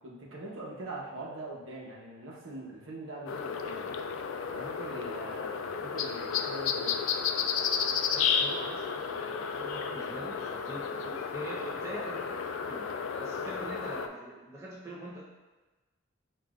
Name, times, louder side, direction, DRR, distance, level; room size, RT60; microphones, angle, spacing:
voice 1, 0.0-3.9 4.5-6.9, right 2 dB, 85° right, -3 dB, 0.9 m, -42 dB
sound 1, 3.3-14.1, left 6 dB, 80° left, 0.3 m, -32 dB
voice 2, 8.1-12.4 12.7-12.9 13.2-15.2, right 1 dB, 15° right, -7 dB, 0.7 m, -43 dB
7.5 x 2.5 x 2.4 m, 1.2 s
head